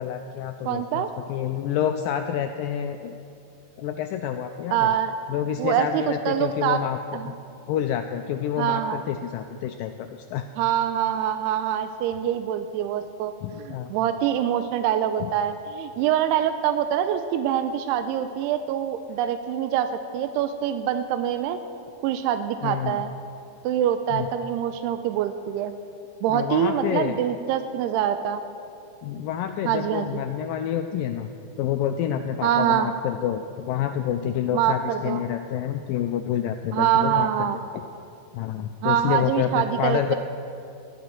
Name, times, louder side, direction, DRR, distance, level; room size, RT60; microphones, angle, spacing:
voice 1, 0.0-3.1 3.8-4.9 5.3-7.0 7.3-7.4 7.7-10.5 13.4-13.9 22.6-23.0 24.1-24.3 26.3-27.1 29.0-31.3 31.6-37.5 38.3-40.2, left 10 dB, 90° left, 6 dB, 2.0 m, -28 dB
voice 2, 0.7-1.1 4.7-5.1 5.6-6.8 7.1-7.3 8.6-9.0 10.6-13.3 13.6-21.6 22.0-23.1 23.6-25.7 26.2-28.4 29.7-30.2 32.4-32.9 34.5-35.2 36.7-37.6 38.8-40.2, right 10 dB, 90° right, 9 dB, 2.7 m, -25 dB
19.5 x 14.5 x 4.4 m, 2.6 s
omnidirectional pair, 4.6 m